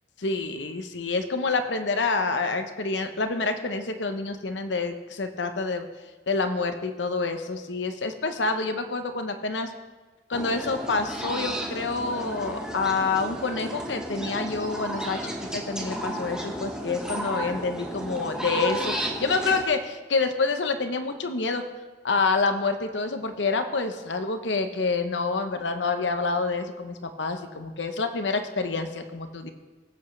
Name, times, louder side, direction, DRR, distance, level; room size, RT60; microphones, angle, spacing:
voice 1, 0.2-5.9 6.3-9.7 10.3-21.6 22.0-29.5, left 3 dB, 85° left, 7 dB, 0.9 m, -27 dB
sound 1, 10.3-19.6, right 1 dB, 5° right, 1.2 m, -33 dB
19.0 x 8.2 x 3.3 m, 1.3 s
head